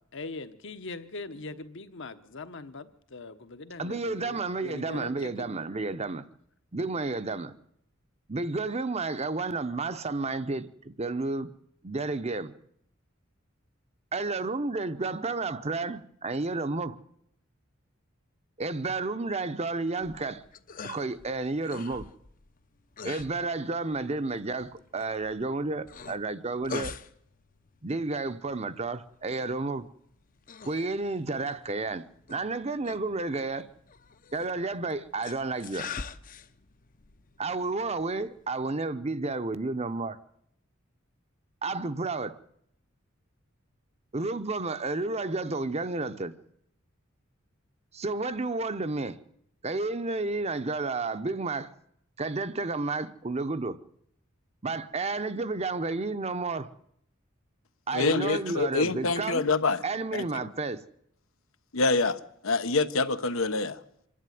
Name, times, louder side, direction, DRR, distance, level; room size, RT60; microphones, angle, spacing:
voice 1, 0.1-5.5, left 3 dB, 65° left, 1.2 m, -41 dB
voice 2, 3.8-6.2 6.7-7.5 8.3-11.5 11.8-12.5 14.1-17.0 18.6-20.4 20.8-22.1 23.0-26.9 27.8-29.9 30.7-33.7 34.3-35.9 37.4-40.2 41.6-42.4 44.1-46.3 47.9-49.2 49.6-51.7 52.2-53.8 54.6-56.7 57.9-59.4 59.8-60.8, right 3 dB, 30° right, 0.8 m, -31 dB
sound 1, 19.9-38.6, left 5 dB, 45° left, 0.8 m, -46 dB
voice 3, 57.9-59.8 60.1-60.5 61.7-63.8, left 3 dB, 85° left, 1.1 m, -26 dB
25.5 x 11.0 x 9.3 m
head